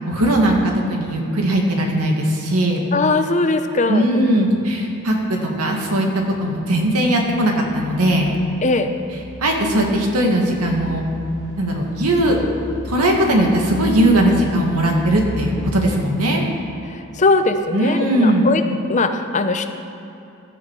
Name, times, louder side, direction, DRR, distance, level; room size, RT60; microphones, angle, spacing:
voice 1, 0.1-2.8 3.9-8.4 9.4-11.0 11.6-12.4 12.9-16.4 17.7-18.5, right 1 dB, 90° right, 1 dB, 2.0 m, -19 dB
voice 2, 2.9-4.5 8.6-8.9 16.9-18.6 18.9-19.7, left 3 dB, 30° left, 8 dB, 0.6 m, -20 dB
sound 1, 6.3-15.9, left 1 dB, 20° right, 2.5 m, -35 dB
16.0 x 10.0 x 4.8 m, 2.9 s
head